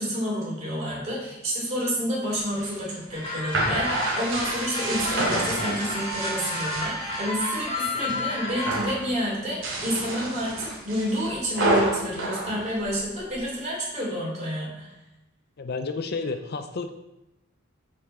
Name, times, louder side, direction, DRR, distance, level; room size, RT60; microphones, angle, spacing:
voice 1, 0.0-14.9, equal, 30° right, -4 dB, 2.8 m, -29 dB
sound 1, 2.4-7.3 7.7-8.2 8.5-9.0 9.5-13.4, right 2 dB, 65° right, 2.5 m, -29 dB
sound 2, 3.1-8.9, left 1 dB, 25° left, 2.0 m, -31 dB
voice 2, 15.6-16.9, left 4 dB, 50° left, 8 dB, 0.5 m, -31 dB
8.4 x 5.4 x 4.3 m, 0.93 s
head